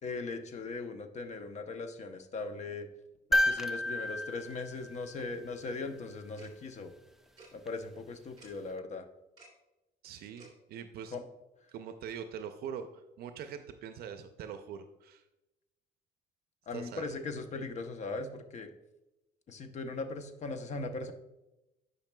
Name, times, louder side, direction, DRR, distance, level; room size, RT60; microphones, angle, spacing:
voice 1, 0.0-2.9 3.3-6.9 7.5-9.1 11.1-11.3 16.7-18.7 19.5-21.1, left 3 dB, 45° left, 8 dB, 0.7 m, -39 dB
sound 1, 3.3-5.6 7.7-7.8, left 1 dB, ahead, 0.4 m, -31 dB
Tick-tock, 6.4-6.5 7.4-7.5 8.4-8.5 9.4-9.5 10.4-10.5, right 3 dB, 25° right, 2.5 m, -54 dB
voice 2, 10.0-11.2 11.7-15.2 16.7-17.0, right 8 dB, 65° right, 8 dB, 0.5 m, -43 dB
10.5 x 5.5 x 2.2 m, 0.97 s
cardioid pair, 110°, 17 cm